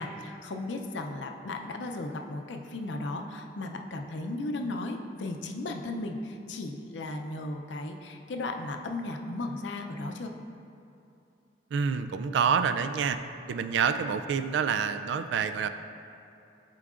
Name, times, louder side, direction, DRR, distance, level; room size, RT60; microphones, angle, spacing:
voice 1, 0.0-10.3, left 2 dB, 85° left, 4 dB, 0.5 m, -35 dB
voice 2, 11.7-13.2 13.5-15.7, right 6 dB, 75° right, 11 dB, 0.3 m, -27 dB
11.0 x 4.6 x 2.5 m, 2.7 s
head